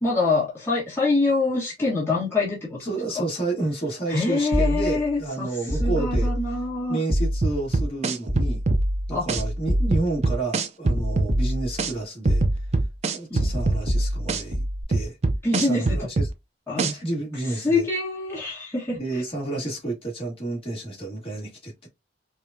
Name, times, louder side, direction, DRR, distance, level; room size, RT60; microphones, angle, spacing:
voice 1, 0.0-2.8 3.1-3.3 4.1-7.0 9.1-9.3 13.3-13.5 15.4-16.1 16.7-16.9 17.4-19.2, left 3 dB, 15° left, 1.3 m, -25 dB
voice 2, 2.8-6.3 6.9-8.6 9.1-12.4 13.1-15.2 15.6-16.3 16.8-17.9 19.0-21.9, right 2 dB, 35° left, 1.6 m, -30 dB
sound 1, 4.5-5.1 5.7-6.8 7.1-7.7 8.3-10.3 10.8-11.9 12.3-12.9 13.4-14.8, equal, 80° right, 1.1 m, -26 dB
sound 2, 7.4-8.8 9.3-9.4 9.9-11.3 11.8-11.9 12.3-13.8 14.3-14.4 14.9-16.3 16.8-16.9, right 3 dB, 40° right, 0.5 m, -23 dB
4.8 x 2.3 x 2.6 m
head